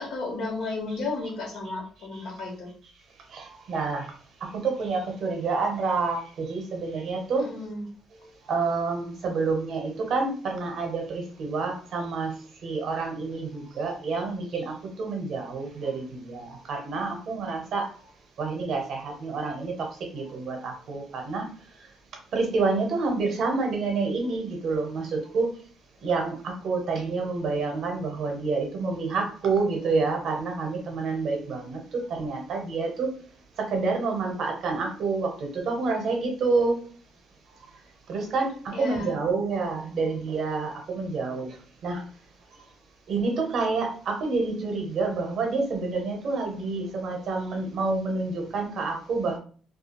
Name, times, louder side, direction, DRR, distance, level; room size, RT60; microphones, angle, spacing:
voice 1, 0.0-2.7 7.3-7.9 38.7-39.1, left 3 dB, 65° left, -1 dB, 1.0 m, -33 dB
voice 2, 3.3-4.1 4.4-7.5 8.5-18.1 18.4-21.5 22.3-25.5 26.0-33.1 33.6-36.9 38.1-41.6 41.8-42.0 43.1-49.4, right 4 dB, 50° right, 2 dB, 0.7 m, -28 dB
2.3 x 2.2 x 2.9 m, 0.43 s
cardioid pair, 180°, 0 cm